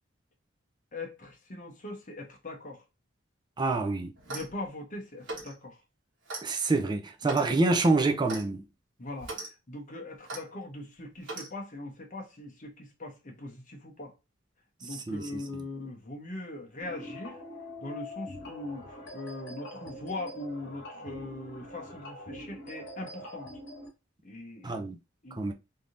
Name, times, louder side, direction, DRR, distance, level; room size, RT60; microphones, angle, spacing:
voice 1, 0.9-2.8 4.3-5.8 7.2-7.5 9.0-14.1 14.8-17.4 17.8-23.5 24.2-24.8 25.2-25.4, left 2 dB, 40° left, 1.0 m, -41 dB
voice 2, 3.6-4.1 6.4-8.6 15.1-15.2 24.6-25.0 25.4-25.5, right 3 dB, 20° right, 0.5 m, -26 dB
Clock, 4.2-4.6 5.2-5.5 6.3-6.5 7.2-7.5 8.3-8.5 9.2-9.5 10.3-10.4 11.2-11.5, right 2 dB, 70° right, 1.2 m, -39 dB
sound 1, 16.8-23.9, left 1 dB, 65° left, 1.5 m, -44 dB
3.4 x 2.7 x 2.4 m
head